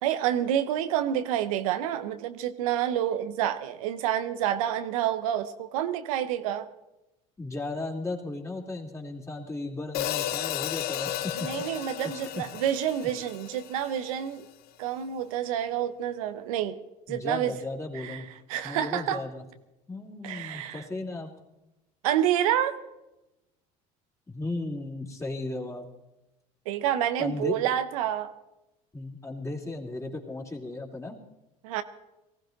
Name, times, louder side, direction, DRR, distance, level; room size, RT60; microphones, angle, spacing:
voice 1, 0.0-6.7 11.4-14.5 14.8-16.8 17.1-17.5 17.9-18.2 18.5-19.2 20.2-20.8 22.0-22.7 26.7-28.3 31.6-31.8, right 11 dB, 85° right, 10 dB, 0.9 m, -28 dB
voice 2, 7.4-11.5 12.0-12.4 17.1-18.3 18.6-19.4 19.9-21.3 24.3-25.9 27.2-27.6 28.9-31.2, left 2 dB, 15° left, 0 dB, 3.3 m, -35 dB
Hi-hat, 9.9-14.2, left 12 dB, 60° left, 0.7 m, -34 dB
19.5 x 15.5 x 4.0 m, 0.95 s
supercardioid pair, 80°, 18 cm